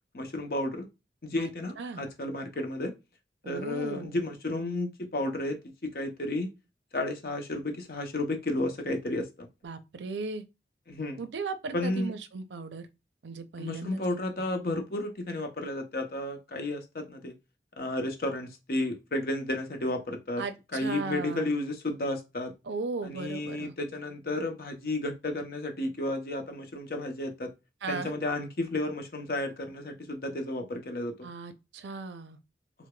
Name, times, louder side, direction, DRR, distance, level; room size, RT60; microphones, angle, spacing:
voice 1, 0.1-0.9 1.2-2.9 3.5-6.5 6.9-9.5 10.9-11.2 11.7-12.1 13.6-17.4 17.8-20.4 20.7-22.5 23.0-27.5 27.9-31.3, left 1 dB, 55° left, 0.6 m, -32 dB
voice 2, 3.4-4.2 9.6-10.4 11.2-12.9 13.2-14.0 20.4-21.5 22.6-23.7 27.8-28.1 31.2-32.4, right 4 dB, 85° right, 0.5 m, -37 dB
4.8 x 2.0 x 2.2 m
head